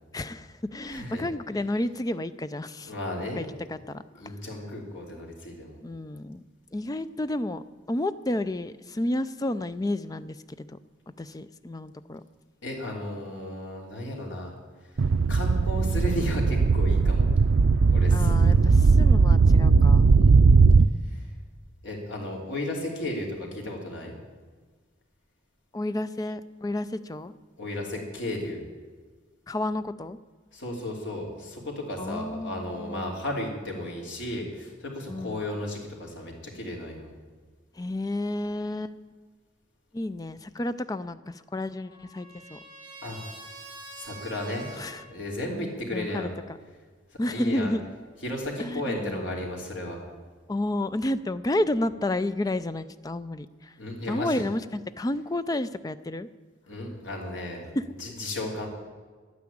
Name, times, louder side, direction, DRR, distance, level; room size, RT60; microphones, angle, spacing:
voice 1, 0.1-2.9 3.4-4.0 5.8-6.4 6.7-10.7 11.2-12.2 18.1-20.1 25.7-27.4 29.5-30.2 32.0-33.1 35.1-35.5 37.8-38.9 39.9-42.6 44.8-45.0 45.9-46.3 47.2-47.8 48.6-49.3 50.5-53.7 54.1-56.3 57.8-57.9, left 1 dB, 20° left, 13 dB, 0.4 m, -31 dB
voice 2, 0.8-1.2 2.8-3.5 4.1-5.8 12.6-14.5 15.3-17.2 17.9-18.9 20.1-20.5 21.1-21.2 21.8-24.1 27.6-28.6 30.5-37.1 43.0-43.2 43.9-44.7 45.1-46.3 47.1-47.7 48.2-50.0 53.8-54.5 56.7-57.6 58.0-58.7, left 1 dB, 80° left, 0 dB, 3.1 m, -34 dB
sound 1, 15.0-20.9, right 4 dB, 85° right, 0.5 m, -18 dB
Trumpet, 41.2-45.1, right 2 dB, 25° right, 2.5 m, -46 dB
11.0 x 9.6 x 8.6 m, 1.5 s
head